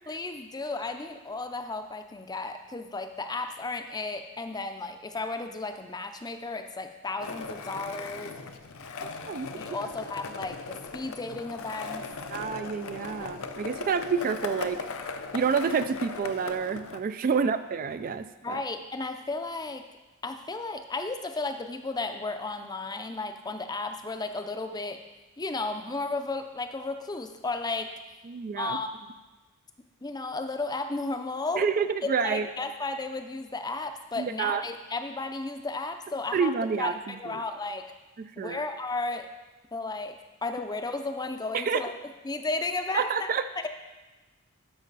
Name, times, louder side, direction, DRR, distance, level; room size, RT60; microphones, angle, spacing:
voice 1, 0.1-8.3 9.6-12.0 13.2-13.3 18.4-19.9 20.2-25.0 25.4-27.9 28.6-29.1 30.0-31.7 32.2-36.5 36.8-37.8 38.4-39.3 39.7-40.1 40.4-41.9 42.2-43.3, left 3 dB, 20° left, 7 dB, 0.5 m, -34 dB
Skateboard, 7.2-17.0, left 4 dB, 65° left, 0.6 m, -38 dB
voice 2, 12.3-14.8 15.3-18.6 28.3-28.8 31.6-32.5 34.2-34.6 36.3-37.4 38.2-38.6 41.5-41.8 42.9-43.5, right 6 dB, 40° right, 11 dB, 0.3 m, -28 dB
12.5 x 5.4 x 4.0 m, 1.1 s
head